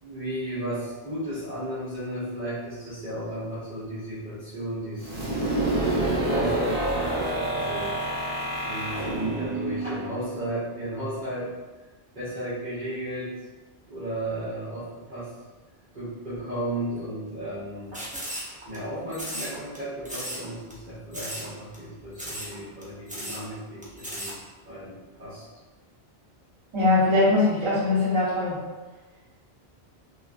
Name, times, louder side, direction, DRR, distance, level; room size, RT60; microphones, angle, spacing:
voice 1, 0.0-5.4 6.2-6.7 6.9-8.0 8.6-11.5 12.1-13.3 13.9-15.3 15.9-18.0 18.6-24.3 24.6-25.4, right 1 dB, 50° right, -14 dB, 1.2 m, -34 dB
sound 1, 5.0-10.7, right 1 dB, 70° right, 1.1 m, -27 dB
sound 2, 17.9-18.8 19.1-19.8 20.0-20.4 20.7-20.8 21.1-21.5 21.7-21.8 22.1-22.5 22.8-22.9 23.1-23.4 23.8-24.3, equal, 15° right, 0.3 m, -35 dB
voice 2, 26.7-28.6, left 2 dB, 30° right, -8 dB, 0.8 m, -21 dB
3.0 x 2.4 x 2.4 m, 1.2 s
omnidirectional pair, 1.1 m